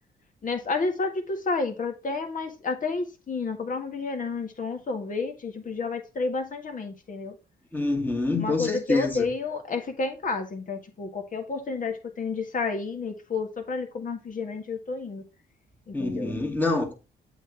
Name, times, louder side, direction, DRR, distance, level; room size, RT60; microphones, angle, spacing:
voice 1, 0.4-7.3 8.4-15.2 15.9-16.4, left 4 dB, 40° left, 1.8 m, -30 dB
voice 2, 7.7-9.3 15.9-16.9, left 2 dB, 10° left, 2.0 m, -26 dB
8.0 x 4.0 x 4.6 m
cardioid pair, 90°, 20 cm